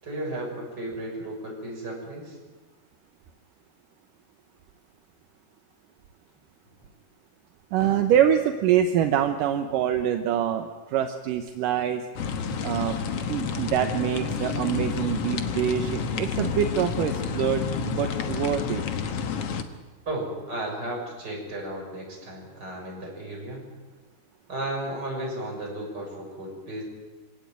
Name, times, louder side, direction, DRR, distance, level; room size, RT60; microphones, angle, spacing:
voice 1, 0.0-2.4 20.1-23.7 24.5-26.8, right 1 dB, 25° right, -1 dB, 7.1 m, -34 dB
sound 1, 4.8-4.9 6.3-6.9 7.8-8.6 8.9-9.4 10.2-10.3 11.1-11.2 12.2-13.6 15.5-17.5, left 1 dB, 90° left, 7.8 m, -46 dB
voice 2, 7.7-12.1 12.6-13.0 13.3-18.8, right 10 dB, 70° right, 6 dB, 2.2 m, -25 dB
sound 2, 12.1-19.6, left 6 dB, 70° left, 1.4 m, -29 dB
25.0 x 17.5 x 9.3 m, 1.3 s
omnidirectional pair, 4.8 m